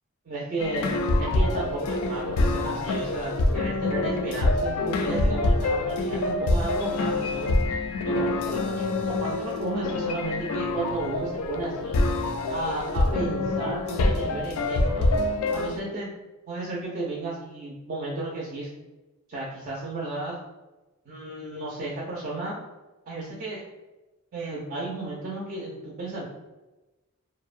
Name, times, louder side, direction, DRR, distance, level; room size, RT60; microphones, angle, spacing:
voice 1, 0.3-7.5 8.0-12.0 12.5-15.1 15.5-16.1 16.5-18.7 19.3-20.4 21.1-22.6 23.1-23.6 24.3-26.2, right 2 dB, 40° right, -5 dB, 0.4 m, -33 dB
sound 1, 0.6-15.8, left 2 dB, 85° left, 0.3 m, -26 dB
2.6 x 2.0 x 2.4 m, 1.1 s
head